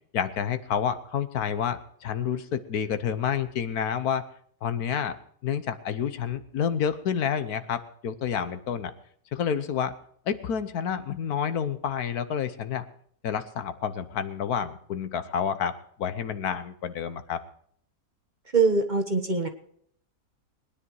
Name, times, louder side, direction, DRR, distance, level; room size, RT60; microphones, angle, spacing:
voice 1, 0.1-4.3 4.6-5.2 5.4-8.9 9.3-9.9 10.3-12.8 13.2-17.4, left 8 dB, 70° left, 11 dB, 1.4 m, -29 dB
voice 2, 18.5-19.5, right 4 dB, 30° right, 4 dB, 1.2 m, -23 dB
20.5 x 10.0 x 4.7 m, 0.64 s
omnidirectional pair, 1.7 m